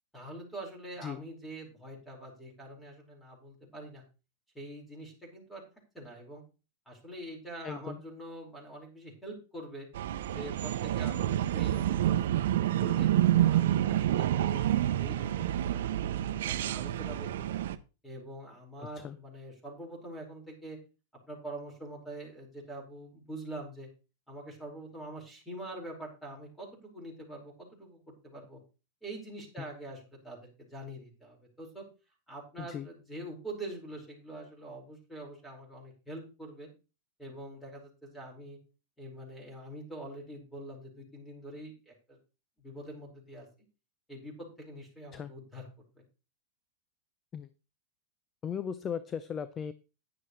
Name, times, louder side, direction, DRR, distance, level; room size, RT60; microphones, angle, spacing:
voice 1, 0.1-4.0 4.5-5.6 5.9-6.4 6.8-9.9 10.3-13.1 13.5-17.5 18.0-20.8 21.1-23.9 24.3-28.6 29.0-31.8 32.3-36.7 37.2-38.6 39.0-42.2 42.6-43.5 44.1-45.7 45.9-46.0, right 1 dB, 5° left, 0 dB, 5.0 m, -45 dB
voice 2, 7.6-8.0 18.8-19.2 29.6-29.7 32.6-32.9 45.1-45.3 47.3-47.5 48.4-49.7, left 7 dB, 25° left, 14 dB, 0.5 m, -37 dB
sound 1, 9.9-17.7, right 12 dB, 75° right, 0.7 m, -28 dB
10.5 x 9.9 x 3.2 m, 0.32 s
supercardioid pair, 135°, 0 cm